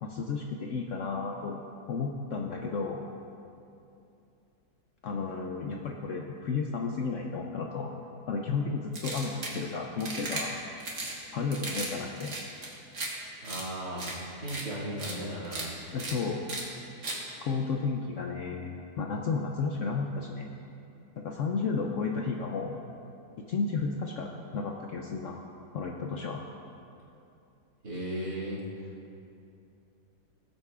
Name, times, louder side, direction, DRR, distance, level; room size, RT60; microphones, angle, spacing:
voice 1, 0.0-1.6 1.9-3.1 5.0-7.9 8.3-10.6 11.3-12.4 15.9-16.4 17.4-20.5 21.2-22.8 23.5-25.4 25.7-26.4, left 4 dB, 65° left, 1 dB, 0.8 m, -32 dB
sound 1, 8.9-9.6 10.0-10.4 10.8-11.1 11.5-11.9 12.2-13.1 13.4-13.6 14.0-14.1 14.5-14.6 15.0-15.1 15.4-15.6 16.0-16.1 16.5-16.6 17.0-17.2, right 2 dB, 50° right, 1.7 m, -36 dB
voice 2, 13.4-14.1 14.4-15.8 27.8-28.6, right 1 dB, 70° right, -7 dB, 2.9 m, -36 dB
17.5 x 7.9 x 2.4 m, 2.7 s
omnidirectional pair, 1.8 m